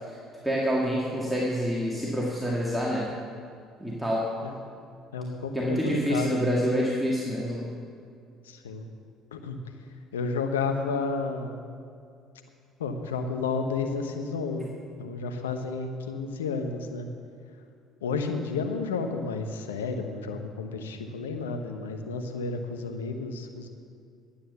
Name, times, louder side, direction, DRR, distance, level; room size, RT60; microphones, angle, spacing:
voice 1, 0.4-3.1 3.8-4.3 5.5-7.7, equal, ahead, -5 dB, 2.2 m, -27 dB
voice 2, 5.1-6.8 8.4-8.9 9.3-9.6 10.1-11.6 12.8-14.7 15.0-17.1 18.0-23.7, left 4 dB, 85° left, 5 dB, 0.9 m, -31 dB
11.5 x 8.7 x 7.0 m, 2.3 s
hypercardioid pair, 60°, 0 cm